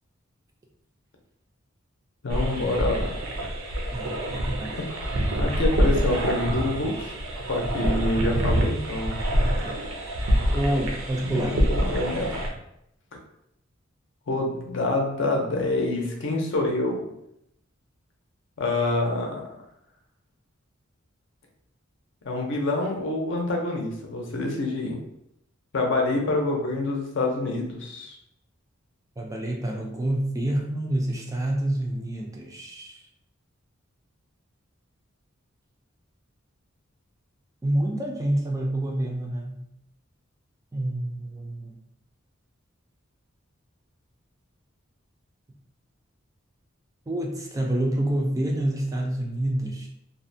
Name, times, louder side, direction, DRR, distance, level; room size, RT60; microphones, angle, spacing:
voice 1, 2.2-3.1 5.4-7.1 7.5-9.2 11.2-12.4 14.3-17.1 18.6-19.6 22.2-25.0 25.7-28.2, left 2 dB, 65° left, 0 dB, 0.6 m, -26 dB
sound 1, 2.3-12.5, equal, 85° right, 0.5 m, -26 dB
voice 2, 3.9-4.8 9.6-9.8 10.4-11.6 29.2-33.0 37.6-39.6 40.7-41.7 47.1-49.9, right 1 dB, 15° right, 0 dB, 0.3 m, -28 dB
2.5 x 2.0 x 2.6 m, 0.78 s
head